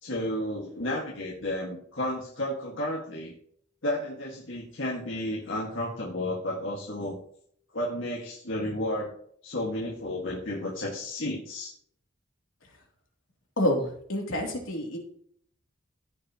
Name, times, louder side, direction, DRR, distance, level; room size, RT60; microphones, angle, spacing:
voice 1, 0.0-3.3 3.8-7.2 7.7-9.1 9.4-11.7, left 1 dB, 70° left, -3 dB, 2.0 m, -32 dB
voice 2, 13.6-15.0, equal, 90° left, 0 dB, 3.2 m, -28 dB
15.5 x 6.6 x 3.1 m, 0.62 s
head